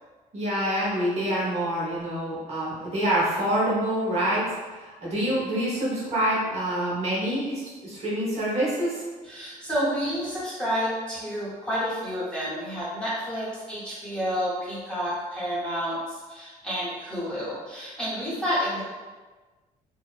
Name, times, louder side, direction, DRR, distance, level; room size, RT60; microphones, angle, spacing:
voice 1, 0.3-9.0, right 1 dB, 45° right, -7 dB, 0.9 m, -26 dB
voice 2, 9.2-18.8, equal, 5° left, -9 dB, 0.8 m, -30 dB
2.7 x 2.0 x 2.3 m, 1.3 s
cardioid pair, 135°, 15 cm